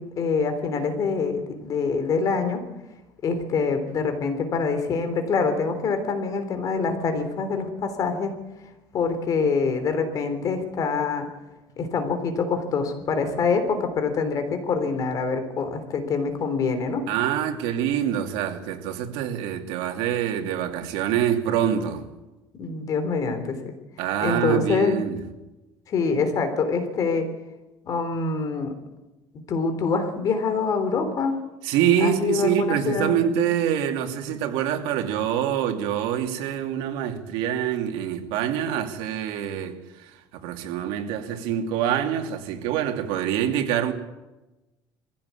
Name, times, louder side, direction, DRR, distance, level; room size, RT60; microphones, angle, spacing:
voice 1, 0.0-2.6 3.2-8.3 8.9-11.3 11.8-17.0 22.6-23.7 24.2-25.0 25.9-27.3 27.8-28.7 29.5-31.4 32.0-33.2, left 5 dB, 45° left, 8 dB, 3.6 m, -25 dB
voice 2, 17.1-22.0 24.0-25.2 31.6-43.9, right 10 dB, 85° right, 4 dB, 2.7 m, -25 dB
22.0 x 16.0 x 8.5 m, 1.1 s
cardioid pair, 135°, 9 cm